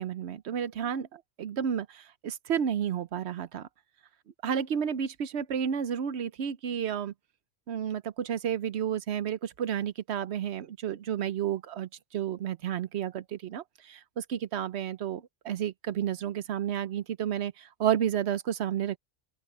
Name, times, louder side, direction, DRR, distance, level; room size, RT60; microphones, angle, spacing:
voice 1, 0.0-3.7 4.4-7.1 7.7-19.0, right 9 dB, 80° right, 1.0 m, -31 dB
open air
omnidirectional pair, 1.1 m